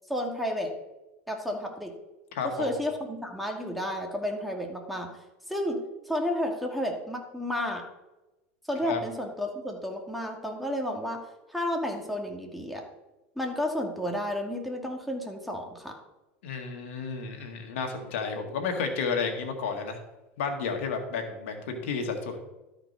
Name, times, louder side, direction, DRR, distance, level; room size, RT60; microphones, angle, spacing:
voice 1, 0.1-0.7 1.3-1.9 2.6-5.1 5.5-7.8 8.7-11.2 11.5-12.8 13.4-15.9, left 1 dB, ahead, 1 dB, 2.3 m, -31 dB
voice 2, 2.3-2.7 8.8-9.0 16.4-20.0 20.4-22.4, left 5 dB, 80° left, 4 dB, 1.8 m, -31 dB
12.5 x 5.2 x 5.4 m, 1.0 s
supercardioid pair, 105°, 7 cm